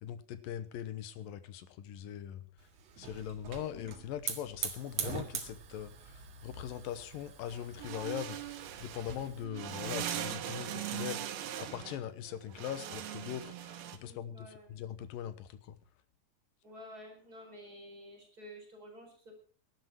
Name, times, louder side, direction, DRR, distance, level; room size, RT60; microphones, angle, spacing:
voice 1, 0.0-2.5 3.0-15.8, left 10 dB, 75° left, 12 dB, 2.6 m, -41 dB
Hiss / Fire, 2.6-9.4, right 7 dB, 50° right, 2.5 m, -43 dB
sound 1, 7.5-14.0, right 11 dB, 85° right, 3.2 m, -40 dB
sound 2, 9.1-13.6, left 4 dB, 45° left, 1.7 m, -60 dB
voice 2, 14.0-14.7 16.6-19.3, equal, 25° right, 1 dB, 4.7 m, -51 dB
18.5 x 12.0 x 4.6 m, 0.42 s
omnidirectional pair, 4.3 m